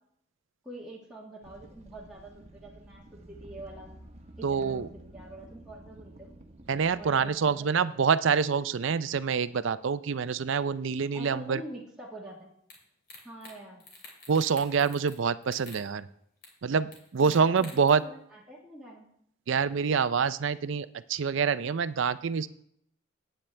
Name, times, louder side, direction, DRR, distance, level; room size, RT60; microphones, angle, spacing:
voice 1, 0.6-3.9 4.4-4.9 5.1-6.3 7.0-8.1 11.1-12.5 13.2-13.8 17.2-19.1, right 1 dB, 5° right, -5 dB, 1.3 m, -45 dB
sound 1, 1.4-7.3, right 1 dB, 30° right, 1.0 m, -50 dB
voice 2, 4.4-4.9 6.7-11.6 14.3-16.1 16.6-18.0 19.5-22.5, right 6 dB, 65° right, 15 dB, 0.4 m, -26 dB
sound 2, 12.7-12.8 13.1-13.5 13.8-15.2 15.4-15.8 16.4-16.5 16.9-17.9, left 3 dB, 45° left, 3.0 m, -48 dB
15.5 x 9.0 x 3.3 m, 0.71 s
head